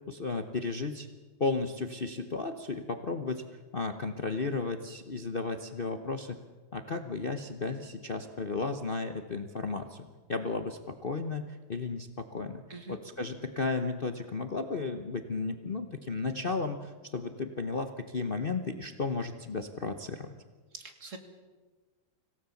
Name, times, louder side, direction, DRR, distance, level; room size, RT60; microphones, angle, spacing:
voice 1, 0.1-1.1 1.4-3.4 3.7-6.4 6.7-12.6 12.9-20.3, left 3 dB, 40° left, 7 dB, 0.8 m, -34 dB
voice 2, 20.7-21.2, right 3 dB, 40° right, 6 dB, 2.2 m, -44 dB
26.0 x 17.0 x 7.1 m, 1.4 s
omnidirectional pair, 2.2 m